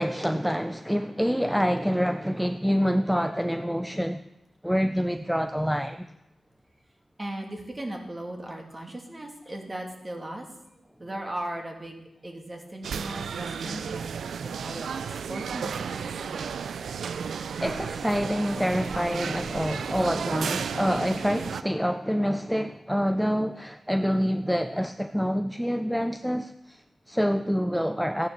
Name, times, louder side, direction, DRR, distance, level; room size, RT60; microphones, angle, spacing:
voice 1, 0.0-4.2 4.6-6.1 17.6-28.3, equal, ahead, 0.5 m, -26 dB
voice 2, 7.2-14.3 14.6-16.4, right 1 dB, 25° right, 2.5 m, -38 dB
sound 1, 12.8-21.6, right 6 dB, 90° right, 0.5 m, -33 dB
15.0 x 9.2 x 6.8 m
wide cardioid pair, 110°, 0 cm